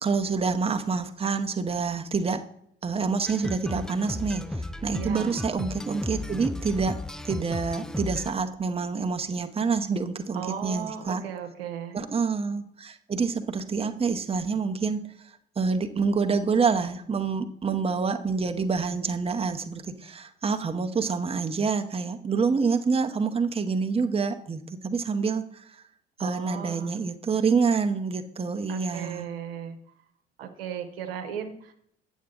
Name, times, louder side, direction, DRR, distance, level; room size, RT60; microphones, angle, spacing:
voice 1, 0.0-2.4 2.8-7.0 7.2-11.2 11.9-25.8 26.2-29.3, right 5 dB, 20° right, 6 dB, 0.8 m, -27 dB
sound 1, 3.3-8.3, left 1 dB, ahead, 0.3 m, -35 dB
voice 2, 4.9-5.4 10.3-12.0 26.2-27.0 28.7-29.8 30.4-31.7, right 8 dB, 80° right, 5 dB, 0.9 m, -36 dB
8.4 x 7.2 x 3.7 m, 0.69 s
figure-of-eight pair, 50°, 29 cm